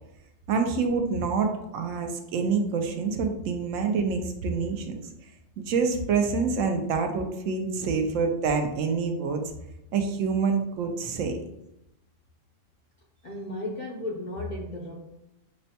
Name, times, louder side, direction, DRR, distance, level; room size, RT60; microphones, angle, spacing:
voice 1, 0.5-5.1 5.6-9.4 9.9-11.4, right 5 dB, 80° right, 5 dB, 0.9 m, -27 dB
voice 2, 13.2-15.0, left 1 dB, 60° left, -2 dB, 0.5 m, -34 dB
6.0 x 2.1 x 2.7 m, 0.87 s
omnidirectional pair, 1.4 m